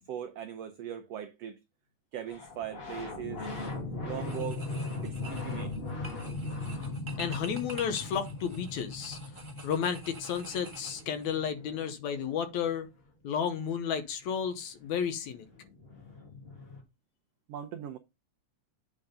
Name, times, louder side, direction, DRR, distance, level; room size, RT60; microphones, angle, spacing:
voice 1, 0.1-1.6 2.1-3.4 4.0-4.6 5.0-5.7 17.5-18.0, right 10 dB, 85° right, 1.4 m, -39 dB
sound 1, 2.3-12.7 14.8-14.9 15.0-16.8, left 3 dB, 30° left, 1.1 m, -39 dB
sound 2, 3.4-3.8 4.2-11.4, right 3 dB, 25° right, 0.6 m, -49 dB
voice 2, 7.2-9.2 9.6-12.9 13.2-15.5, left 7 dB, 70° left, 2.1 m, -32 dB
8.7 x 3.6 x 5.3 m
omnidirectional pair, 3.7 m